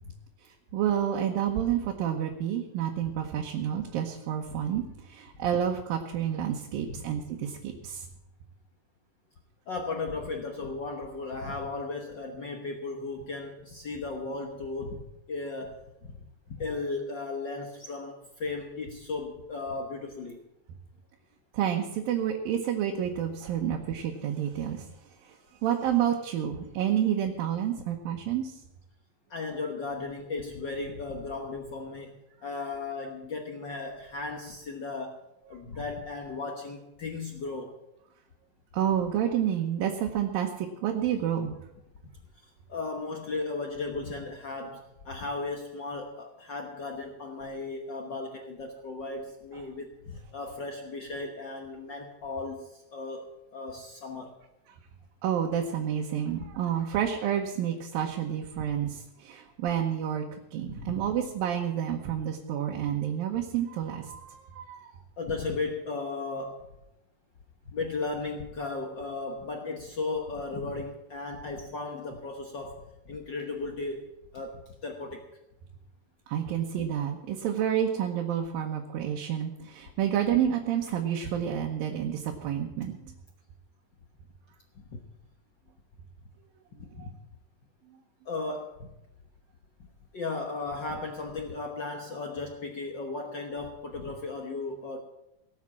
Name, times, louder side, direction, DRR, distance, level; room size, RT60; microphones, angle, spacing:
voice 1, 0.4-8.1 21.5-24.9 25.2-28.6 38.7-41.5 49.5-49.6 55.2-64.9 76.3-83.1 87.0-87.1, right 9 dB, 90° right, 1 dB, 2.8 m, -29 dB
voice 2, 9.7-16.1 16.5-20.4 29.3-35.2 35.5-37.8 42.4-54.3 60.7-60.9 65.2-66.7 67.7-74.0 74.3-75.2 84.7-85.0 86.9-87.2 88.2-88.9 90.1-95.0, left 3 dB, 80° left, 3 dB, 1.0 m, -36 dB
18.0 x 7.3 x 7.3 m, 0.90 s
omnidirectional pair, 4.0 m